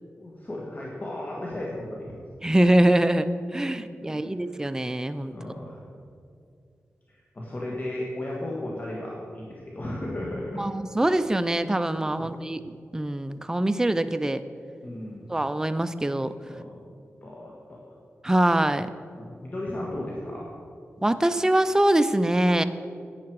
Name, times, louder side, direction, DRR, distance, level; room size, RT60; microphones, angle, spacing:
voice 1, 0.1-2.1 3.7-4.7 5.3-5.8 7.1-10.6 12.2-12.3 14.8-15.3 16.4-16.8 17.2-18.0 18.2-18.4 19.2-20.5, left 1 dB, 35° left, -3 dB, 1.6 m, -35 dB
voice 2, 2.4-3.3 3.5-5.3 10.5-12.6 12.9-14.4 15.3-16.3 18.2-18.9 21.0-22.6, right 1 dB, 10° right, 11 dB, 0.4 m, -23 dB
11.0 x 9.5 x 4.7 m, 2.4 s
cardioid pair, 70°, 5 cm